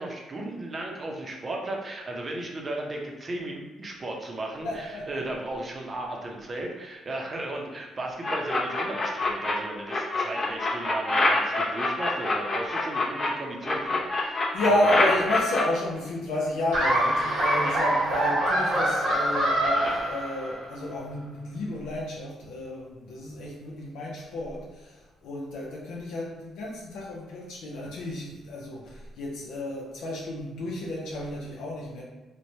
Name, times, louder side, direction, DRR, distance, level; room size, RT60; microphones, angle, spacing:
voice 1, 0.0-15.0, right 2 dB, 35° right, 0 dB, 0.6 m, -35 dB
voice 2, 4.6-5.2 14.5-32.0, left 1 dB, 85° left, -3 dB, 0.5 m, -31 dB
sound 1, 8.2-9.5 9.9-13.3 13.6-15.6, left 2 dB, 35° left, 0.6 m, -25 dB
Laughter, 16.7-20.7, right 1 dB, 80° right, 0.8 m, -25 dB
3.1 x 2.1 x 2.7 m, 1.1 s
cardioid pair, 90°, 0 cm